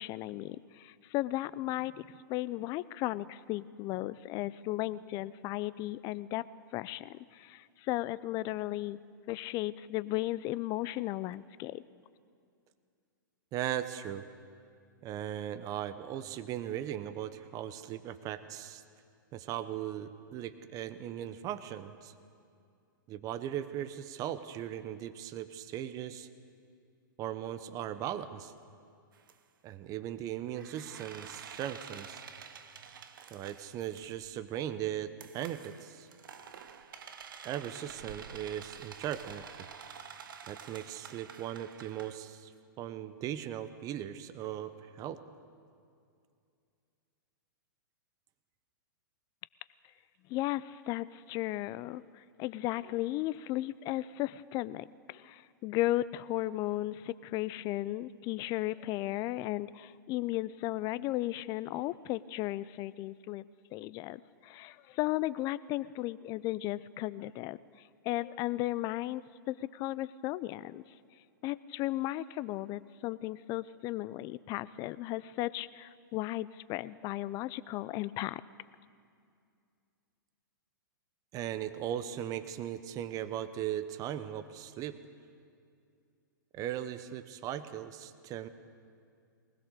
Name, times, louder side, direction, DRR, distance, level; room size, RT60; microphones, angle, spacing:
voice 1, 0.0-6.4 6.7-9.0 9.3-11.8 50.3-63.4 63.7-67.6 68.0-69.2 69.5-70.8 71.4-78.4, left 16 dB, 35° left, 18 dB, 0.5 m, -35 dB
voice 2, 13.5-14.2 15.0-18.8 19.3-22.1 23.1-26.3 27.2-28.5 29.6-32.2 33.3-36.1 37.4-39.7 40.5-42.5 42.8-45.2 81.3-85.0 86.5-88.5, right 11 dB, 30° right, 12 dB, 1.0 m, -38 dB
sound 1, 29.1-29.3 30.5-34.3 35.2-42.2, right 7 dB, 70° right, 1.2 m, -49 dB
21.0 x 19.5 x 6.7 m, 2.4 s
hypercardioid pair, 120°, 11 cm